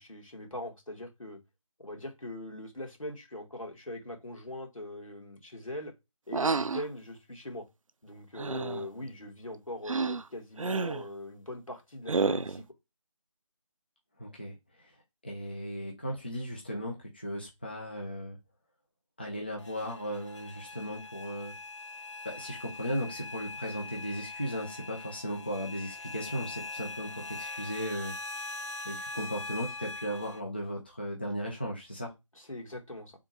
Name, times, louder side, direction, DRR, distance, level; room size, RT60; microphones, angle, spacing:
voice 1, 0.0-1.4 1.8-5.9 6.3-7.7 8.0-12.7 32.4-33.1, left 1 dB, 80° left, 1.9 m, -41 dB
sound 1, 6.3-6.9 8.4-8.9 9.9-10.2 10.6-11.1 12.1-12.6, right 4 dB, 80° right, 0.4 m, -30 dB
voice 2, 14.2-14.5 15.2-18.4 19.2-21.5 22.2-28.1 28.8-32.1, equal, 20° left, 0.6 m, -36 dB
sound 2, 19.6-30.4, left 3 dB, 60° left, 0.8 m, -42 dB
3.5 x 2.6 x 4.5 m
figure-of-eight pair, 165°, 17 cm